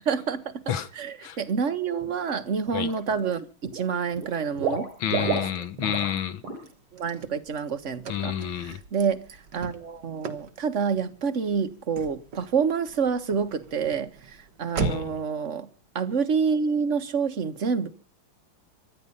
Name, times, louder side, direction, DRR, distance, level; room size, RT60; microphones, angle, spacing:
voice 1, 0.0-0.6 0.9-4.9 5.2-5.4 6.9-15.7 15.9-17.9, right 6 dB, 40° right, 1.5 m, -28 dB
Water / Liquid, 2.0-2.3 2.7-3.3 3.6-6.2 6.4-6.7 7.0-7.1, right 5 dB, 75° right, 5.0 m, -31 dB
voice 2, 5.0-6.4 8.1-8.8 14.8-15.2, left 9 dB, 70° left, 2.0 m, -29 dB
Car / Slam, 6.6-15.3, right 5 dB, 60° right, 2.0 m, -39 dB
25.0 x 10.5 x 5.5 m
omnidirectional pair, 2.3 m